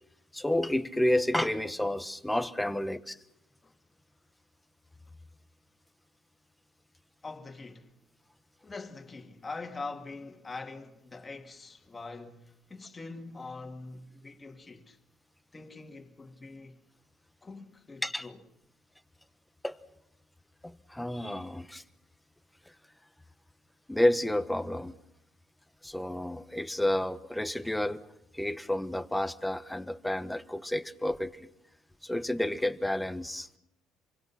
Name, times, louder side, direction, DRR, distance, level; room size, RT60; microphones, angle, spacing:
voice 1, 0.3-3.2 18.0-18.3 19.6-19.8 20.6-21.8 23.9-24.9 25.8-28.0 28.3-31.5 32.0-33.5, left 1 dB, 5° left, 1.2 m, -30 dB
voice 2, 7.2-7.9 8.6-15.0 15.5-16.8 17.4-18.4, left 3 dB, 20° left, 2.4 m, -43 dB
28.0 x 24.0 x 5.9 m
cardioid pair, 110°, 0 cm